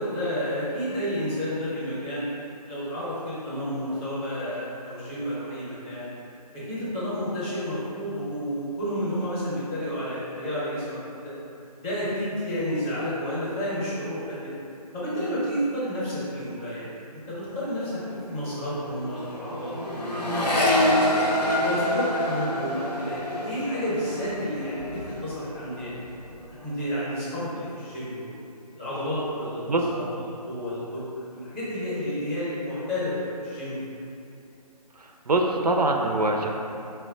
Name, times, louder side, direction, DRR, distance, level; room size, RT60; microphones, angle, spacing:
voice 1, 0.0-2.3 2.7-6.1 6.5-11.3 11.8-14.5 14.9-21.1 21.6-25.9 26.5-28.3 28.8-31.0 31.3-33.8, equal, 15° left, -10 dB, 0.7 m, -31 dB
Accelerating revving vroom, 17.4-17.7 17.9-25.4 25.8-26.4, left 1 dB, 85° left, 0.9 m, -27 dB
voice 2, 35.3-36.5, right 2 dB, 75° right, 2 dB, 0.5 m, -23 dB
4.6 x 2.2 x 3.6 m, 2.6 s
figure-of-eight pair, 150°, 20 cm